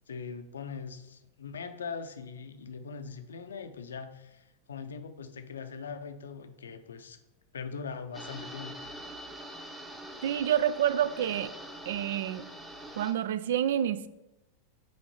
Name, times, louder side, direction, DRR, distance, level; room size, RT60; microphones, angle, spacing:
voice 1, 0.1-7.2 7.5-8.8, left 5 dB, 70° left, 9 dB, 0.5 m, -41 dB
sound 1, 8.1-13.1, right 1 dB, 5° right, 0.8 m, -44 dB
voice 2, 10.2-11.5 11.9-12.5 13.0-14.1, right 10 dB, 55° right, 16 dB, 0.3 m, -28 dB
6.2 x 4.4 x 4.3 m, 0.94 s
figure-of-eight pair, 90°, 0 cm